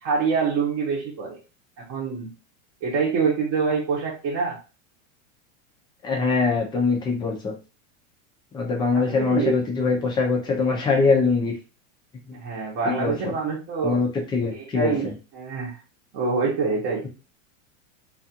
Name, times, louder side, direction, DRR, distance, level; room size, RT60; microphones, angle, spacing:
voice 1, 0.0-1.4 1.8-2.3 2.8-4.6 8.9-9.6 12.3-14.0 14.5-15.8 16.1-17.0, right 4 dB, 35° right, -5 dB, 0.8 m, -25 dB
voice 2, 6.0-7.5 8.5-11.5 12.3-12.4 12.9-13.3 13.8-15.1, left 4 dB, 10° left, 0 dB, 0.4 m, -23 dB
2.4 x 2.4 x 2.8 m, 0.32 s
supercardioid pair, 145°, 40 cm